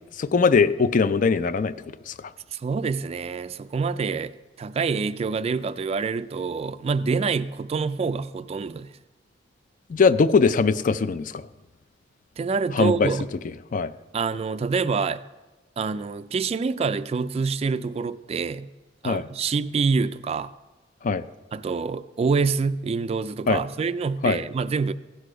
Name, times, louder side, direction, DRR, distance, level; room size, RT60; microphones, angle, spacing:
voice 1, 0.2-1.7 2.1-2.3 9.9-11.4 12.7-13.1 13.7-13.9 19.0-19.2 21.0-21.2 23.5-23.6 24.2-24.4, left 4 dB, 45° left, 0.4 m, -21 dB
voice 2, 2.5-8.9 12.4-13.3 14.1-15.2 15.8-18.7 19.0-20.5 21.5-24.9, right 5 dB, 35° right, 0.3 m, -26 dB
15.5 x 6.6 x 5.0 m
head